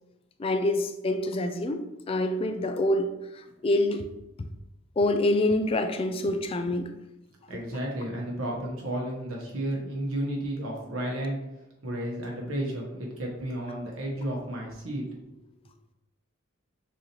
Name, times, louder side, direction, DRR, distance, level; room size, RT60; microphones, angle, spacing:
voice 1, 0.4-3.2 3.6-4.0 4.4-4.5 5.0-6.9, left 1 dB, 25° left, 7 dB, 0.3 m, -26 dB
voice 2, 7.5-11.4 11.8-15.0, right 1 dB, 90° right, -1 dB, 1.2 m, -32 dB
6.1 x 2.8 x 3.0 m, 0.93 s
head